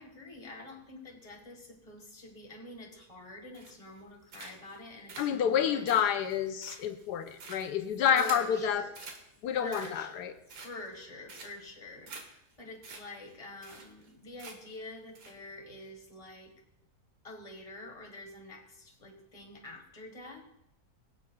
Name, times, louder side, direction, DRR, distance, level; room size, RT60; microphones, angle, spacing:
voice 1, 0.0-5.9 8.1-8.9 9.6-10.2 10.5-16.5 17.2-20.4, left 2 dB, 20° left, 1 dB, 1.6 m, -46 dB
sound 1, 3.5-4.0 4.3-4.8 5.1-8.5 8.9-9.2 9.6-10.1 10.5-10.9 11.3-11.7 12.1-12.2 12.5-12.6 12.8-13.0 13.3-13.4 13.6-14.1 14.4-14.8 15.1-15.3, right 4 dB, 80° right, 1.9 m, -47 dB
voice 2, 5.2-8.9 9.4-10.3, left 8 dB, 85° left, 7 dB, 1.3 m, -29 dB
22.0 x 7.4 x 2.3 m, 0.83 s
omnidirectional pair, 1.7 m